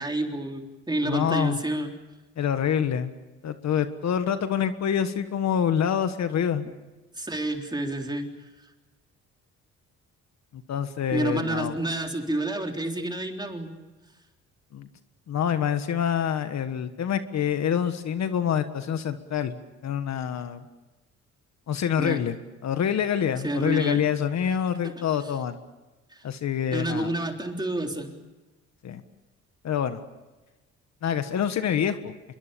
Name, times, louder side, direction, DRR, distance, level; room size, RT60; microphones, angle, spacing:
voice 1, 0.0-1.9 7.1-8.3 11.1-13.7 21.9-22.2 23.4-24.0 24.8-25.0 26.1-26.2 26.7-28.1, right 1 dB, 15° right, 3 dB, 3.6 m, -29 dB
voice 2, 1.0-1.6 2.4-3.1 3.4-6.7 10.5-11.7 14.7-14.9 15.3-20.6 21.7-22.4 22.6-25.6 26.2-27.1 28.8-29.0 29.6-30.0 31.0-32.1, left 8 dB, 60° left, 10 dB, 1.6 m, -26 dB
26.5 x 22.5 x 7.0 m, 1.1 s
cardioid pair, 90°, 30 cm